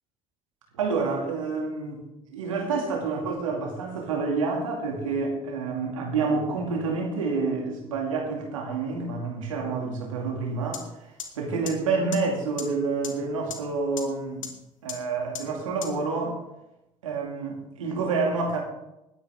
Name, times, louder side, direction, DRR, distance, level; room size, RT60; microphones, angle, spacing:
voice 1, 0.7-2.0 2.3-10.9 11.4-14.5 14.8-16.4 17.0-18.6, right 4 dB, 85° right, 1 dB, 2.4 m, -28 dB
sound 1, 10.7-10.8 11.2-11.3 11.7-11.8 12.1-12.2 12.6-12.7 13.0-13.1 13.5-13.6 14.0-14.1 14.4-14.5 14.9-15.0 15.3-15.4 15.8-15.9, left 8 dB, 90° left, 1.2 m, -33 dB
20.0 x 9.5 x 3.6 m, 0.91 s
hypercardioid pair, 55°, 16 cm